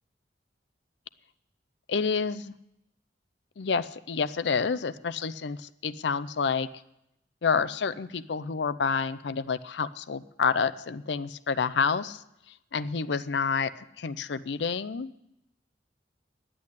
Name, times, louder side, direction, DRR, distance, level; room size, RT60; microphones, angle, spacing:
voice 1, 1.9-2.6 3.6-6.7 7.4-12.2 12.7-15.1, left 5 dB, 75° left, 14 dB, 0.5 m, -29 dB
10.0 x 8.6 x 9.8 m, 0.83 s
head